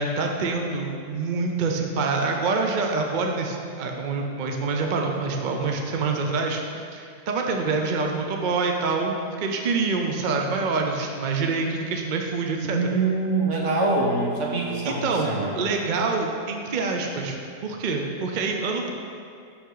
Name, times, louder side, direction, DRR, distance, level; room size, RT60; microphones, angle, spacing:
voice 1, 0.0-6.6 6.9-12.8 14.8-18.9, right 4 dB, 50° right, 2 dB, 0.7 m, -26 dB
voice 2, 12.6-15.6, right 3 dB, 70° right, -2 dB, 1.4 m, -24 dB
8.2 x 6.3 x 3.8 m, 2.4 s
omnidirectional pair, 1.3 m